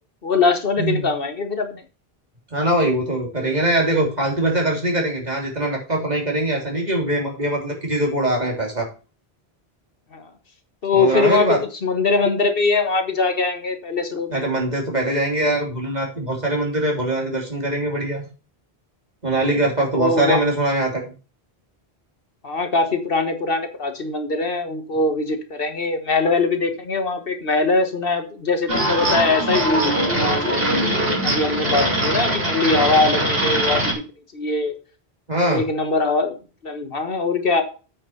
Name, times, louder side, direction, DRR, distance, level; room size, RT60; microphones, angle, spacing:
voice 1, 0.2-1.8 10.1-10.3 10.8-11.5 11.8-14.5 19.4-19.7 19.9-20.4 22.4-30.6 31.2-34.0 34.3-34.7 35.5-36.4 36.6-37.6, left 3 dB, 65° left, 7 dB, 1.6 m, -22 dB
voice 2, 2.5-8.9 10.9-11.6 14.3-18.2 19.2-21.1 35.3-35.6, right 1 dB, 45° right, 0 dB, 3.4 m, -22 dB
sound 1, 28.7-33.9, right 1 dB, 70° right, 3.9 m, -21 dB
8.8 x 6.4 x 5.7 m, 0.34 s
omnidirectional pair, 1.0 m